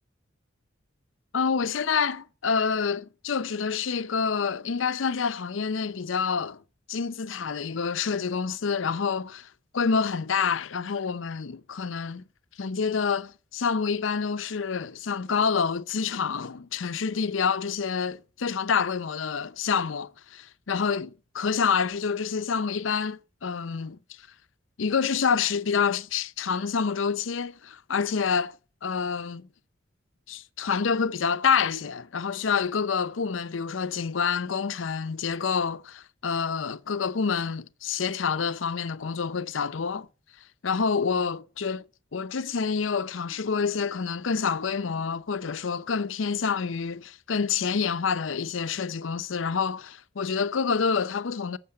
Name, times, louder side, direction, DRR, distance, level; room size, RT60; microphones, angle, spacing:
voice 1, 1.3-6.6 6.9-9.5 9.7-12.2 12.6-24.0 24.8-28.5 28.8-29.4 30.3-40.1 40.6-41.9 42.1-51.6, left 6 dB, 85° left, 0.6 m, -27 dB
11.5 x 7.2 x 8.6 m
head